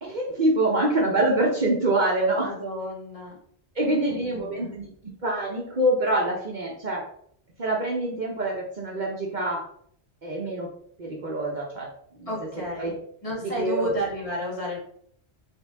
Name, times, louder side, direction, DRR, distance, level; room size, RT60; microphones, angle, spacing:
voice 1, 0.0-2.5 3.7-4.9 5.2-7.0 7.6-9.6 10.2-10.7 11.0-11.9 12.1-12.3 12.8-12.9 13.4-13.9, right 1 dB, 45° right, -2 dB, 1.0 m, -25 dB
voice 2, 2.4-3.4 3.8-4.7 12.3-13.0 13.2-14.8, right 1 dB, 30° left, -6 dB, 2.0 m, -32 dB
4.3 x 3.3 x 3.4 m, 0.63 s
omnidirectional pair, 1.1 m